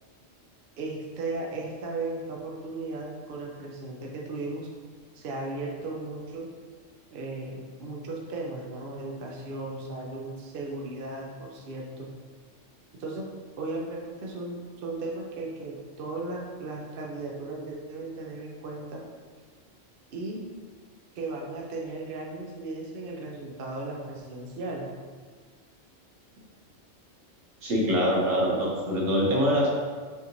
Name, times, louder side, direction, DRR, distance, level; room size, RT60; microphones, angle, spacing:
voice 1, 0.8-4.7 5.1-6.5 7.1-12.1 13.0-13.3 13.6-19.0 20.1-20.4 21.1-24.9, right 2 dB, 55° right, -1 dB, 0.7 m, -36 dB
voice 2, 27.6-29.7, equal, 85° right, -4 dB, 1.4 m, -24 dB
5.5 x 3.1 x 2.6 m, 1.6 s
omnidirectional pair, 1.3 m